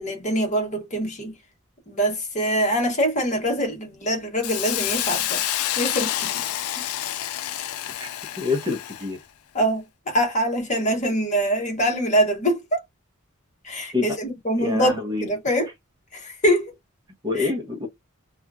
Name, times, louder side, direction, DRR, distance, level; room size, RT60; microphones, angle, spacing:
voice 1, 0.0-1.3 1.9-5.4 5.8-6.3 6.8-6.9 9.5-12.8 13.6-15.7 16.1-16.7 17.3-17.5, equal, 35° left, 1.2 m, -24 dB
Hiss, 4.4-9.1, left 12 dB, 90° left, 0.4 m, -28 dB
voice 2, 8.4-9.2 13.9-14.0 14.6-15.3 17.2-17.9, left 3 dB, 20° right, 0.7 m, -26 dB
2.8 x 2.3 x 2.4 m
head